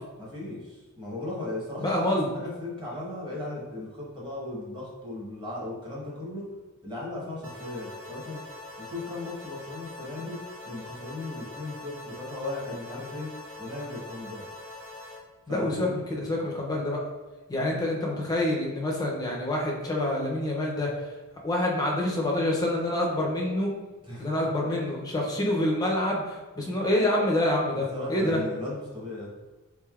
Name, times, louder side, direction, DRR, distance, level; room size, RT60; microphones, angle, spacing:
voice 1, 0.2-6.5 6.8-8.4 8.8-13.3 13.6-14.4 15.5-15.9 17.6-17.7 24.0-24.5 27.9-29.3, left 2 dB, 20° right, -5 dB, 1.0 m, -36 dB
voice 2, 1.8-2.3 15.5-17.0 17.5-20.9 21.4-23.7 24.2-28.4, left 1 dB, 15° left, -2 dB, 0.5 m, -27 dB
sound 1, 7.4-15.2, left 2 dB, 70° right, 1.4 m, -43 dB
3.5 x 3.3 x 2.3 m, 1.2 s
head